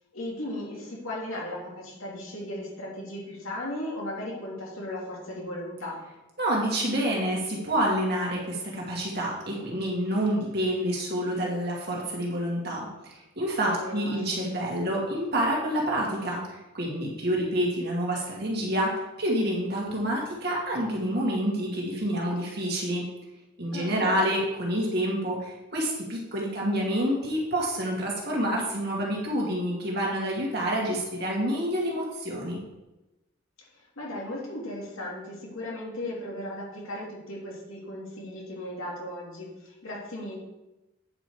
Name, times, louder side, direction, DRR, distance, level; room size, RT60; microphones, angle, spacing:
voice 1, 0.1-6.0 13.6-14.3 23.7-24.3 34.0-40.4, left 1 dB, 90° left, -3 dB, 2.6 m, -36 dB
voice 2, 6.4-23.0 23.6-32.6, equal, 50° right, -3 dB, 2.2 m, -28 dB
9.0 x 5.2 x 4.8 m, 0.98 s
head